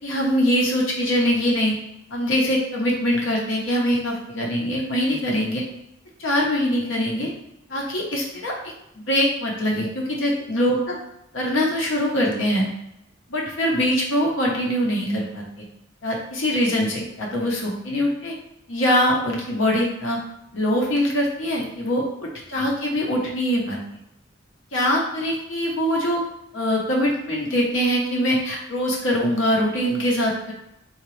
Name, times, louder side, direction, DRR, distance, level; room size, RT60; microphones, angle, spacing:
voice 1, 0.0-1.8 2.1-5.6 6.2-7.3 7.7-8.5 9.1-11.0 11.3-12.6 13.3-15.7 16.0-18.3 18.7-20.2 20.5-23.8 24.7-26.2 26.5-30.5, equal, 75° left, -2 dB, 0.8 m, -23 dB
3.9 x 2.4 x 3.1 m, 0.84 s
head